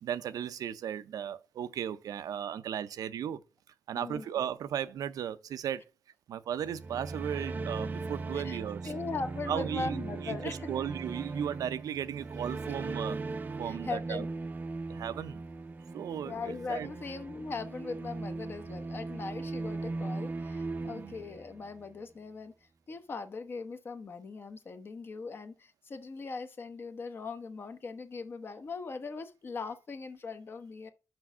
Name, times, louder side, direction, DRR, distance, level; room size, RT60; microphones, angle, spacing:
voice 1, 0.0-3.4 3.9-5.8 6.3-8.8 9.5-13.2 13.6-14.2 14.9-15.4 15.9-16.9 20.8-21.1, right 9 dB, 85° right, 0.6 m, -36 dB
voice 2, 3.9-4.4 8.3-10.8 13.6-14.3 16.2-30.9, left 4 dB, 40° left, 0.9 m, -40 dB
sound 1, 6.6-21.8, right 3 dB, 30° right, 0.5 m, -38 dB
6.1 x 5.2 x 6.1 m
wide cardioid pair, 165°, 6 cm